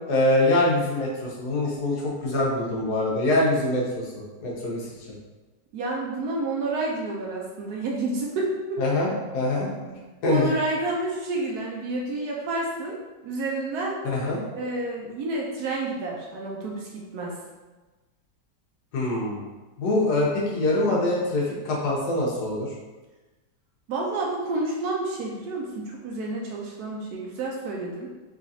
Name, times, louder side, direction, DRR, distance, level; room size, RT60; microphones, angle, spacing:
voice 1, 0.1-1.1 1.4-4.1 4.4-4.8 8.8-9.9 10.2-10.5 14.0-14.4 18.9-19.4 19.8-22.7, left 2 dB, 70° left, -4 dB, 1.3 m, -24 dB
voice 2, 5.7-8.8 9.8-9.9 10.3-14.0 14.5-17.4 23.9-28.1, right 2 dB, 70° right, -2 dB, 1.0 m, -29 dB
3.7 x 3.3 x 2.6 m, 1.2 s
omnidirectional pair, 1.9 m